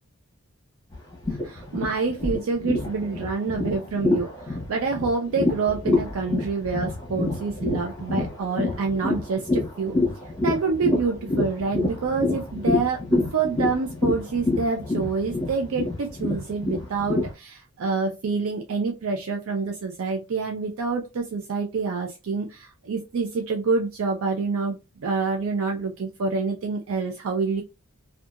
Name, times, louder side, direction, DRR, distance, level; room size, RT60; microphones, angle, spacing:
sound 1, 0.9-17.3, left 2 dB, 20° left, 0.9 m, -27 dB
voice 1, 1.4-10.0 10.4-27.6, right 4 dB, 65° right, 3 dB, 0.4 m, -27 dB
2.7 x 2.3 x 2.3 m, 0.26 s
head